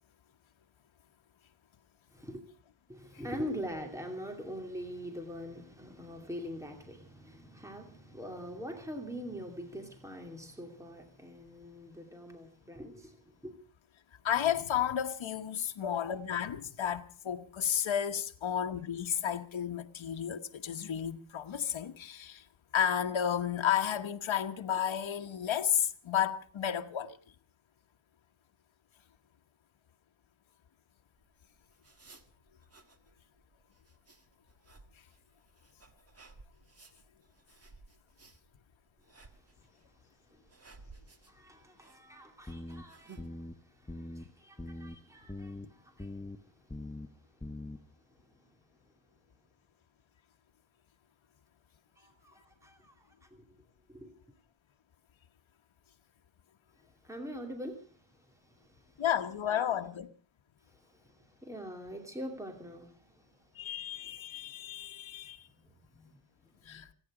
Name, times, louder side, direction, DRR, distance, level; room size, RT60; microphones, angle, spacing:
voice 1, 2.1-2.4 2.9-13.5 40.3-40.4 41.2-47.2 52.0-53.5 53.9-54.1 57.0-59.0 59.4-59.8 60.7-63.4 65.5-66.8, equal, 5° right, 2.6 m, -44 dB
voice 2, 14.2-22.5 22.7-27.2 59.0-60.1 63.5-65.5 66.6-66.9, left 9 dB, 80° left, 1.2 m, -32 dB
sound 1, 31.2-43.3, right 3 dB, 30° right, 1.6 m, -58 dB
sound 2, 42.5-42.8 43.2-43.5 43.9-44.2 44.6-44.9 45.3-45.7 46.0-46.4 46.7-47.1 47.4-47.8, left 1 dB, 10° left, 0.9 m, -42 dB
28.5 x 10.0 x 4.9 m
wide cardioid pair, 135°, 46 cm